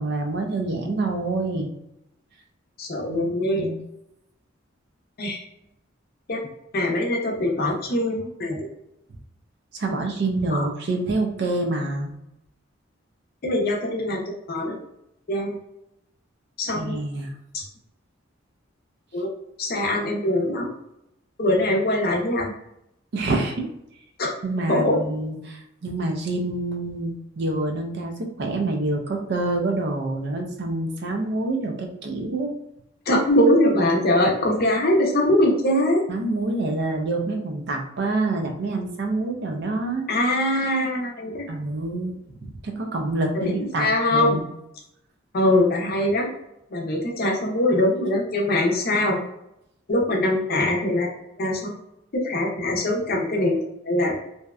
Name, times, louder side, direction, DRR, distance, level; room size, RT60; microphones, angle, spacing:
voice 1, 0.0-1.7 3.1-3.8 9.7-12.1 16.7-17.3 23.1-23.6 24.4-32.5 36.1-40.1 41.5-42.2 42.4-43.9 44.1-44.4, right 2 dB, 60° right, 3 dB, 0.5 m, -27 dB
voice 2, 2.8-3.7 5.2-5.4 6.3-6.4 6.7-8.7 10.5-10.7 13.4-14.8 15.3-15.6 16.6-17.0 17.5-17.6 19.1-19.3 19.6-20.7 21.4-22.5 24.2-24.3 24.7-25.0 33.1-36.0 40.1-41.5 43.3-44.4 45.3-46.3 46.7-49.2 49.9-51.1 51.4-51.7 52.2-53.6 53.8-54.1, left 1 dB, 50° left, 0 dB, 0.6 m, -22 dB
2.7 x 2.1 x 2.3 m, 0.81 s
head